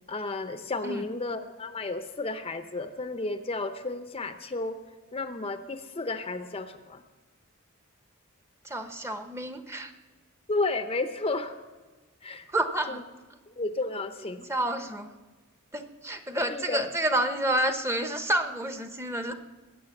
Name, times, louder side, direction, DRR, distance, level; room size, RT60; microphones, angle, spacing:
voice 1, 0.1-4.8 5.1-7.0 10.5-11.5 12.2-12.5 12.9-13.0 13.6-14.5 16.5-16.9, left 3 dB, 25° left, 8 dB, 0.7 m, -32 dB
voice 2, 8.6-9.9 12.5-13.0 14.5-15.1 15.7-19.3, right 1 dB, 10° right, 7 dB, 0.9 m, -29 dB
21.5 x 8.7 x 7.2 m, 1.3 s
head